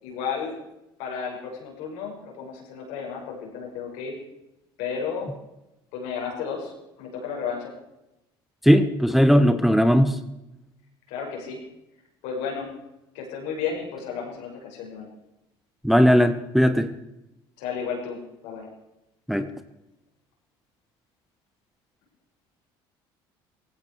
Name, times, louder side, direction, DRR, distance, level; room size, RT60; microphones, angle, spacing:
voice 1, 0.0-0.6 1.0-4.1 4.8-5.3 5.9-6.7 7.0-7.7 11.1-11.6 12.2-12.7 13.1-15.1 17.6-18.2 18.4-18.7, left 6 dB, 75° left, 0 dB, 6.0 m, -32 dB
voice 2, 8.6-10.2 15.8-16.9 19.3-19.5, equal, ahead, 9 dB, 1.2 m, -18 dB
17.5 x 16.0 x 4.8 m, 0.92 s
supercardioid pair, 80°, 12 cm